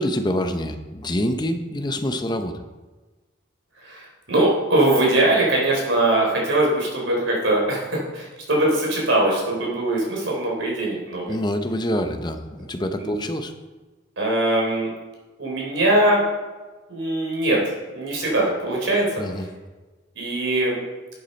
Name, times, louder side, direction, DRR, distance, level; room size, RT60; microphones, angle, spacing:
voice 1, 0.0-2.6 11.3-13.5 19.2-19.5, equal, 25° left, 7 dB, 0.7 m, -26 dB
voice 2, 3.8-11.3 13.0-13.2 14.2-14.9 15.4-16.2 16.9-19.5 20.2-20.8, right 1 dB, 90° right, -2 dB, 3.7 m, -22 dB
11.0 x 8.2 x 4.4 m, 1.2 s
head